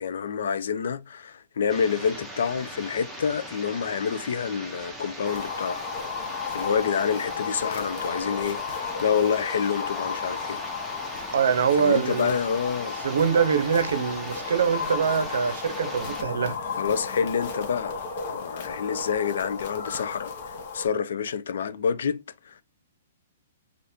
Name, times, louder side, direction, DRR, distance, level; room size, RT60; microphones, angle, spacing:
voice 1, 0.0-5.8 6.5-10.6 11.8-13.0 16.5-17.9 18.3-22.6, left 6 dB, 70° left, 0.4 m, -28 dB
sound 1, 1.7-16.2, right 1 dB, ahead, 0.6 m, -40 dB
sound 2, 5.2-20.9, left 5 dB, 45° left, 0.8 m, -34 dB
voice 2, 11.3-12.3 13.0-16.6, right 7 dB, 80° right, 0.6 m, -24 dB
2.7 x 2.5 x 3.4 m
hypercardioid pair, 165°, 0 cm